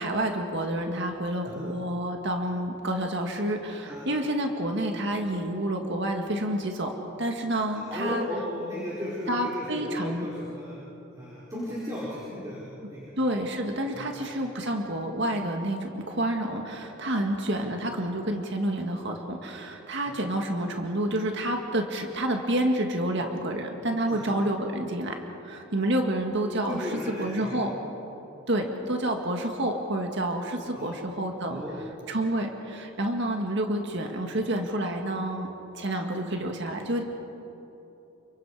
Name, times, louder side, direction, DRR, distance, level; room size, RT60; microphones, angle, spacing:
voice 1, 0.0-6.9 7.2-8.3 9.3-10.3 13.2-25.2 25.4-27.7 28.5-31.6 32.1-35.5 35.7-37.0, right 1 dB, 55° right, 3 dB, 2.0 m, -29 dB
voice 2, 7.9-10.8 11.1-13.1 13.9-14.3 17.1-17.2 20.1-20.2 24.1-24.3 26.7-27.6 30.7-30.9 31.5-31.8, left 1 dB, 15° right, -8 dB, 4.7 m, -35 dB
30.0 x 25.5 x 5.0 m, 3.0 s
head